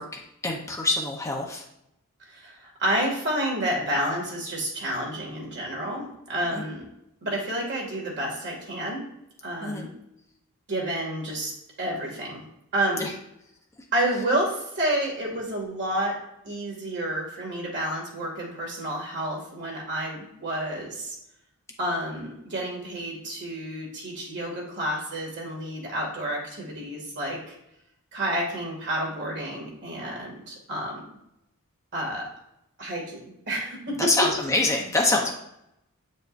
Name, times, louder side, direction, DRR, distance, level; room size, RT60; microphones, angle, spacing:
voice 1, 0.0-1.6 6.5-6.6 9.6-9.9 13.0-13.1 34.0-35.3, left 2 dB, 15° left, -1 dB, 0.8 m, -25 dB
voice 2, 2.3-6.8 7.2-9.0 9.4-9.9 10.7-11.5 11.8-12.4 12.7-13.1 13.9-16.2 16.4-21.1 21.8-27.5 28.1-31.0 31.9-32.3 32.8-34.0, right 1 dB, 55° right, -1 dB, 2.2 m, -30 dB
8.5 x 5.2 x 2.6 m, 0.82 s
head